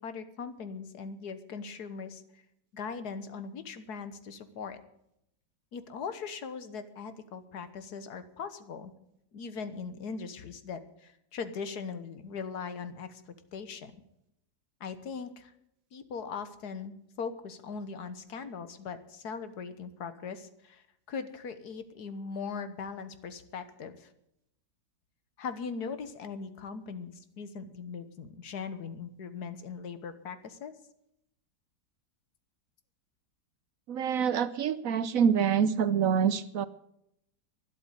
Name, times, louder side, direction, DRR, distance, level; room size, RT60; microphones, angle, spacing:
voice 1, 0.0-2.4 2.7-4.8 5.7-8.9 9.3-13.9 14.8-15.5 15.9-24.1 25.4-30.7, left 5 dB, 70° left, 11 dB, 1.7 m, -40 dB
voice 2, 33.9-36.7, right 7 dB, 65° right, 14 dB, 1.0 m, -26 dB
12.0 x 11.0 x 8.0 m, 0.80 s
omnidirectional pair, 1.7 m